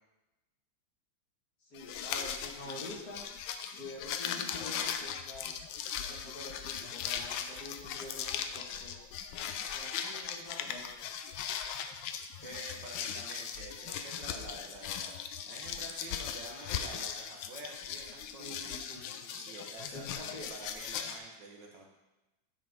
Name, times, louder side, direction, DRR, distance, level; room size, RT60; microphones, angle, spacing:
voice 1, 1.6-3.2 3.8-5.6 6.1-9.0 9.7-10.8 18.4-19.4 19.9-20.5, left 1 dB, 50° left, -3 dB, 1.8 m, -47 dB
sound 1, 1.8-21.2, left 8 dB, 75° left, 1.2 m, -39 dB
voice 2, 12.4-18.6 19.3-21.9, right 2 dB, 65° right, 0 dB, 1.7 m, -48 dB
9.0 x 5.9 x 3.5 m, 1.0 s
omnidirectional pair, 2.2 m